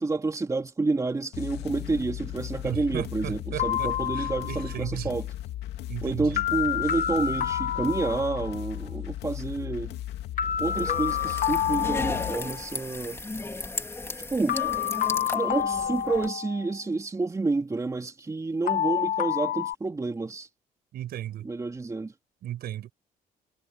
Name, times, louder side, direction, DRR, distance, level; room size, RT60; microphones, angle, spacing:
voice 1, 0.0-5.2 6.0-10.0 10.6-13.2 14.3-14.6 15.3-20.5 21.4-22.1, right 3 dB, 20° right, 2.7 m, -29 dB
sound 1, 1.3-12.3, left 13 dB, 75° left, 2.9 m, -36 dB
voice 2, 2.6-5.2 5.9-6.5 20.9-21.5 22.4-22.9, right 12 dB, 65° right, 5.6 m, -35 dB
sound 2, 3.6-4.7 6.4-8.7 10.4-12.7 14.5-16.8 18.7-19.7, left 10 dB, 50° left, 1.5 m, -28 dB
sound 3, 10.6-16.3, left 2 dB, 15° left, 2.8 m, -35 dB
cardioid pair, 110°, 17 cm